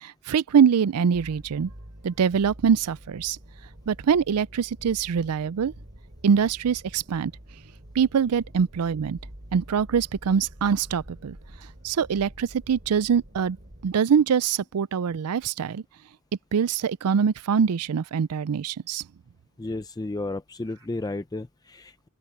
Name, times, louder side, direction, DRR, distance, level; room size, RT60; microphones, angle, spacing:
voice 1, 0.0-1.7 2.0-3.4 3.9-5.7 6.2-7.3 8.0-9.2 9.5-11.4 11.8-13.6 13.8-15.8 16.5-19.0, right 7 dB, 90° right, 0.4 m, -23 dB
sound 1, 1.1-14.0, right 1 dB, 45° right, 2.9 m, -47 dB
voice 2, 19.6-22.1, left 2 dB, 15° left, 0.5 m, -33 dB
open air
head